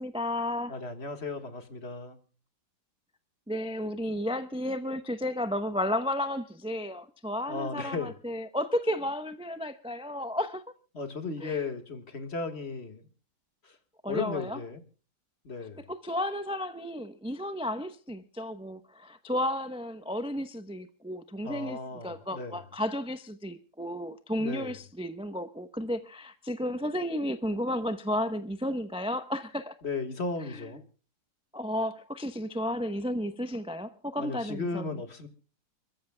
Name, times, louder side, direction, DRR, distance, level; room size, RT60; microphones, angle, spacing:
voice 1, 0.0-0.8 3.5-10.6 11.4-11.6 14.0-14.6 15.6-29.8 30.4-30.7 31.5-34.9, left 1 dB, 5° right, 0.4 m, -33 dB
voice 2, 0.7-2.2 7.5-8.1 10.9-13.1 13.6-13.8 14.1-14.8 15.5-15.8 21.4-22.6 24.4-24.8 29.8-30.8 34.2-35.3, left 4 dB, 40° left, 1.8 m, -35 dB
29.5 x 14.0 x 2.2 m
omnidirectional pair, 1.8 m